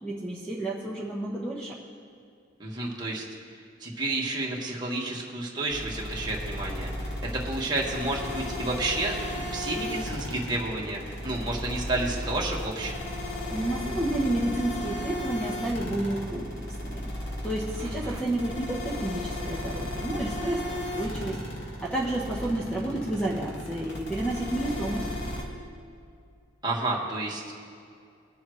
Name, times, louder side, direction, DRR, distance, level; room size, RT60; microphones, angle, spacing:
voice 1, 0.0-1.8 13.5-17.0 17.4-21.4 21.8-25.1, right 1 dB, 5° left, -5 dB, 1.0 m, -30 dB
voice 2, 2.6-3.2 3.8-6.9 7.4-12.9 17.7-18.2 26.6-27.4, right 2 dB, 25° right, -3 dB, 1.7 m, -31 dB
sound 1, 5.7-25.4, left 1 dB, 85° left, 2.1 m, -35 dB
20.5 x 7.1 x 3.2 m, 2.4 s
head